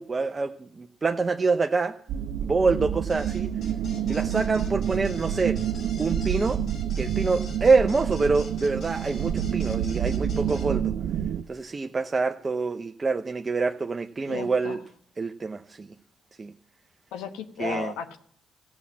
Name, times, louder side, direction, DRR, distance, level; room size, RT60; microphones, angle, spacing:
voice 1, 0.0-2.0 2.4-3.5 4.1-5.6 6.0-6.6 7.0-10.9 11.5-14.8 15.2-15.9 16.4-16.5 17.6-17.9, right 4 dB, 35° right, 6 dB, 0.6 m, -26 dB
sound 1, 2.1-11.4, right 9 dB, 75° right, 0.5 m, -28 dB
sound 2, 3.1-10.7, left 2 dB, 65° left, 4.8 m, -46 dB
voice 2, 14.3-14.8 17.1-18.2, left 6 dB, 85° left, 8 dB, 1.1 m, -34 dB
15.5 x 7.1 x 7.4 m, 0.65 s
supercardioid pair, 65°, 0 cm